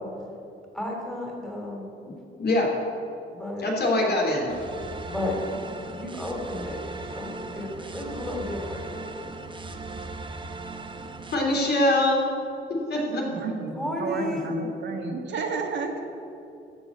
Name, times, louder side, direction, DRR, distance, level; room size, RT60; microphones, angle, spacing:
voice 1, 0.7-1.8 3.3-3.6 5.0-5.3 5.9-6.8 7.1-8.8 13.7-14.6, left 1 dB, ahead, -1 dB, 2.9 m, -32 dB
voice 2, 2.4-2.7 3.6-4.5 11.3-12.2 12.9-13.2, left 1 dB, 55° left, -2 dB, 3.2 m, -23 dB
sound 1, 4.5-11.3, right 2 dB, 25° right, 0.9 m, -38 dB
voice 3, 13.1-16.0, right 4 dB, 65° right, 2 dB, 1.6 m, -32 dB
13.5 x 5.2 x 8.5 m, 2.7 s
cardioid pair, 90°, 20 cm